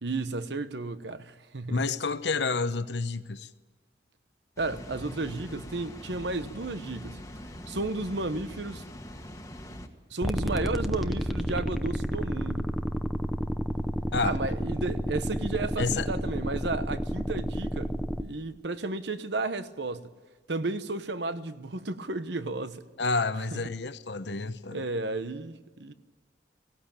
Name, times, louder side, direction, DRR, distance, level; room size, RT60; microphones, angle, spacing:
voice 1, 0.0-1.9 4.6-7.2 7.7-8.8 10.1-12.7 14.2-20.1 20.5-22.8 23.5-23.6 24.7-25.9, right 2 dB, 65° right, 1.0 m, -33 dB
voice 2, 1.7-3.5 14.1-14.4 15.8-16.1 23.0-24.8, left 4 dB, 70° left, 0.9 m, -29 dB
Water, 4.6-9.9, equal, 15° left, 1.5 m, -43 dB
sound 1, 10.2-18.2, equal, ahead, 0.7 m, -30 dB
18.0 x 16.5 x 8.9 m
head